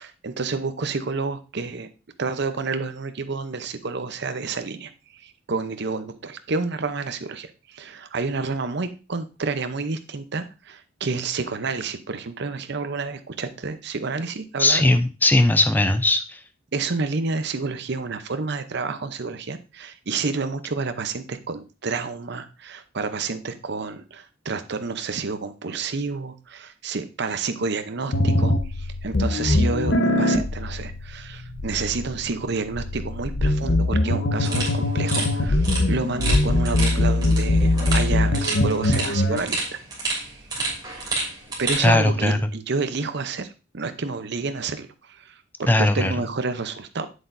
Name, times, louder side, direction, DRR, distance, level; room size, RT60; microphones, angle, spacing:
voice 1, 0.0-1.9 2.2-14.9 16.7-39.8 41.6-43.5 43.7-47.1, right 4 dB, 55° right, 10 dB, 0.7 m, -29 dB
voice 2, 14.6-16.4 41.8-42.5 45.7-46.1, left 2 dB, 10° left, 9 dB, 0.5 m, -19 dB
sound 1, 28.1-39.4, left 1 dB, 60° left, 0.9 m, -22 dB
sound 2, 34.4-41.9, right 3 dB, 20° right, 2.9 m, -30 dB
8.1 x 7.8 x 2.6 m, 0.31 s
head